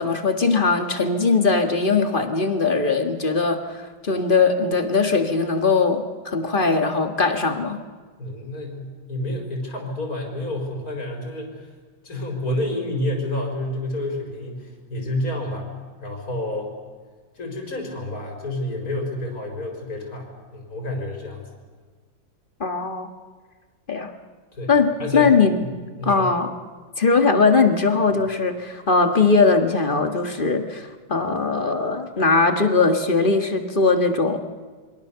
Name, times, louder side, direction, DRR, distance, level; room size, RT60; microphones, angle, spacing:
voice 1, 0.0-7.8 22.6-23.1 23.9-24.1 24.7-25.6 26.0-26.5 27.0-34.4, left 4 dB, 30° left, 6 dB, 1.8 m, -20 dB
voice 2, 8.2-11.7 12.0-15.7 16.0-16.7 17.3-21.4 24.5-24.7 25.0-25.3 26.0-26.3, left 1 dB, 50° left, 2 dB, 5.0 m, -29 dB
27.5 x 23.5 x 7.0 m, 1.5 s
omnidirectional pair, 2.0 m